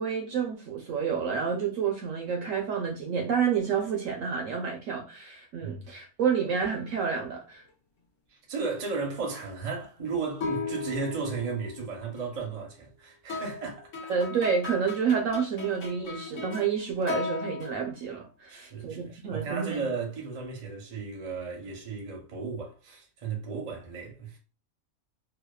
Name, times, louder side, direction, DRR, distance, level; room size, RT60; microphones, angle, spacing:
voice 1, 0.0-7.6 14.1-19.8, right 6 dB, 70° right, 0.9 m, -29 dB
sound 1, 6.6-7.3 10.4-12.3 13.3-16.7 17.0-17.8, left 4 dB, 65° left, 1.0 m, -37 dB
voice 2, 8.3-13.8 18.5-24.4, right 4 dB, 40° right, 0.6 m, -35 dB
2.8 x 2.1 x 2.2 m
omnidirectional pair, 1.6 m